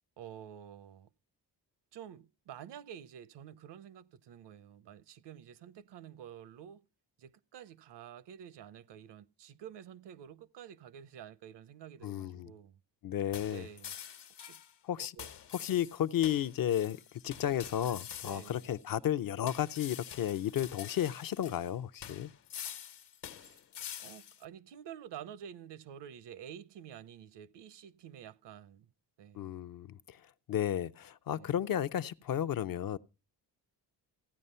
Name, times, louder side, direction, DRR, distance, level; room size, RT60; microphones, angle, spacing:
voice 1, 0.2-1.1 1.9-6.8 7.2-12.8 13.5-13.9 14.4-14.6 15.1-15.3 18.2-18.7 23.4-23.6 24.0-28.9 29.2-29.5 31.3-31.5, right 9 dB, 80° right, 0.8 m, -49 dB
voice 2, 12.0-12.5 13.0-13.7 14.9-15.1 15.5-17.0 17.2-22.3 29.3-30.2 30.5-33.0, left 10 dB, 55° left, 0.6 m, -33 dB
sound 1, 13.3-14.7 15.2-18.8 19.5-21.7 22.0-24.4, left 9 dB, 75° left, 1.2 m, -47 dB
15.0 x 9.4 x 5.5 m
wide cardioid pair, 145°, 41 cm